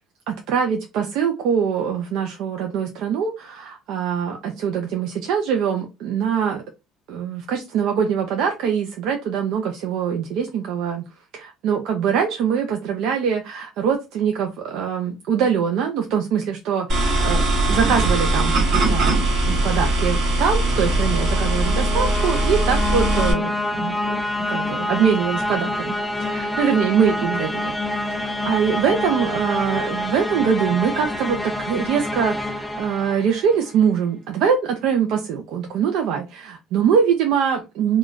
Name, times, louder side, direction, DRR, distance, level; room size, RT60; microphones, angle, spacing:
voice 1, 0.3-6.6 7.1-11.0 11.3-24.2 24.5-27.8 28.1-38.0, right 7 dB, 65° right, 3 dB, 0.5 m, -23 dB
sound 1, 16.9-23.3, right 2 dB, 50° right, 1.5 m, -20 dB
sound 2, 20.7-33.7, left 2 dB, 5° left, 0.3 m, -27 dB
3.5 x 2.3 x 2.5 m, 0.25 s
cardioid pair, 155°, 0 cm